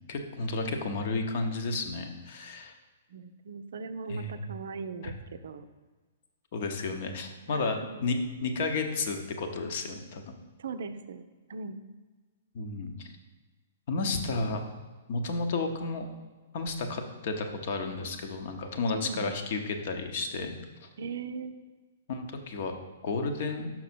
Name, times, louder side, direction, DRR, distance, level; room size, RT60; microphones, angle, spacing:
voice 1, 0.1-2.7 4.1-4.3 6.5-10.4 12.5-13.1 13.9-14.6 15.1-16.1 16.5-20.5 22.1-22.7 23.0-23.7, left 3 dB, 45° left, 5 dB, 0.9 m, -32 dB
voice 2, 3.1-5.7 7.5-8.0 10.6-11.2 11.5-11.8 18.9-19.3 21.0-21.5, right 4 dB, 55° right, 10 dB, 0.5 m, -39 dB
6.0 x 5.9 x 4.3 m, 1.3 s
figure-of-eight pair, 115°, 0 cm